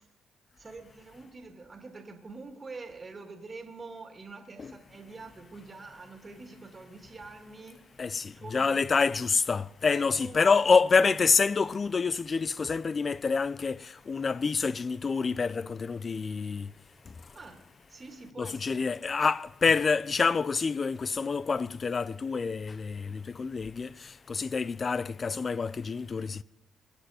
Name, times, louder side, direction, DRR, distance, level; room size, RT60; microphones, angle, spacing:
voice 1, 0.6-7.8 8.3-9.0 9.9-10.6 17.3-17.6 17.9-18.9, right 3 dB, 30° right, 2.1 m, -45 dB
voice 2, 8.0-13.8 14.1-16.7 18.4-23.9 24.3-26.4, left 5 dB, 35° left, 0.5 m, -27 dB
22.0 x 8.0 x 5.0 m
cardioid pair, 90°, 0 cm